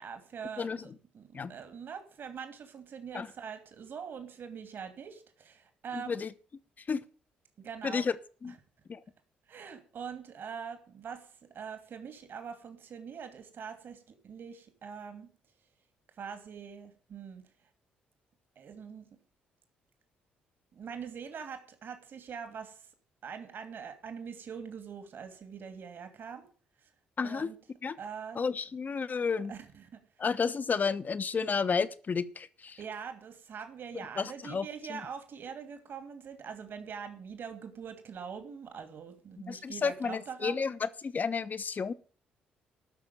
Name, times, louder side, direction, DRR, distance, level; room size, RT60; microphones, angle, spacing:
voice 1, 0.0-6.2 7.6-8.1 8.5-8.6 9.5-15.3 16.2-17.4 18.6-19.1 20.7-22.9 23.2-26.5 26.8-26.9 27.2-27.6 28.0-28.4 29.5-30.0 32.8-40.6, right 6 dB, 55° right, 8 dB, 2.7 m, -43 dB
voice 2, 5.9-6.3 6.9-7.0 7.8-8.1 8.4-8.5 8.9-9.0 27.2-27.5 27.8-28.0 28.3-29.5 30.2-32.8 34.2-35.0 39.5-41.9, left 5 dB, 40° left, 13 dB, 1.1 m, -31 dB
13.5 x 6.3 x 9.4 m, 0.43 s
hypercardioid pair, 45°, 4 cm